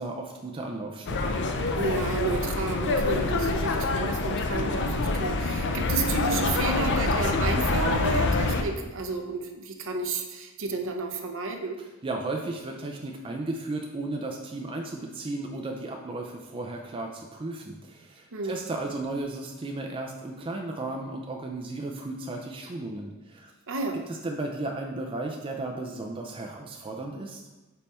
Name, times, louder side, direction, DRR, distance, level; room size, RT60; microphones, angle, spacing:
voice 1, 0.0-1.4 12.0-23.5 24.1-27.4, right 2 dB, 25° right, 1 dB, 0.4 m, -34 dB
sound 1, 1.1-8.6, left 2 dB, 55° left, 0.5 m, -26 dB
voice 2, 1.7-11.8 18.3-18.6 23.7-24.0, right 3 dB, 60° right, 4 dB, 0.7 m, -31 dB
5.3 x 4.3 x 4.2 m, 1.1 s
head